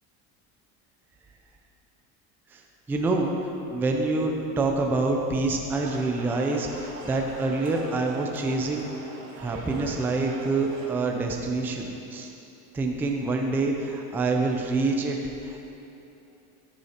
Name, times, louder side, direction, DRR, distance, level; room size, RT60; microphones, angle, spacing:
voice 1, 2.9-8.8 9.4-12.3 12.7-15.6, right 3 dB, 5° right, 1 dB, 0.3 m, -26 dB
sound 1, 5.7-10.9, right 2 dB, 80° right, 2.9 m, -41 dB
11.0 x 9.8 x 4.3 m, 2.9 s
cardioid pair, 170°, 40 cm